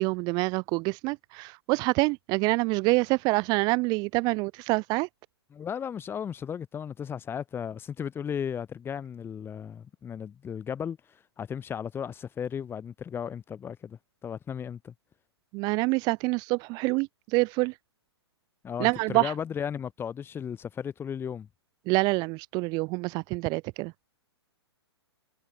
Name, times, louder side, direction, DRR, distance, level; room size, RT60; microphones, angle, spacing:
voice 1, 0.0-5.1 15.5-17.7 18.8-19.3 21.9-23.9, right 26 dB, 30° right, 1.2 m, -26 dB
voice 2, 5.5-14.9 18.6-21.5, left 8 dB, 15° left, 6.4 m, -35 dB
figure-of-eight pair, 115°, 14 cm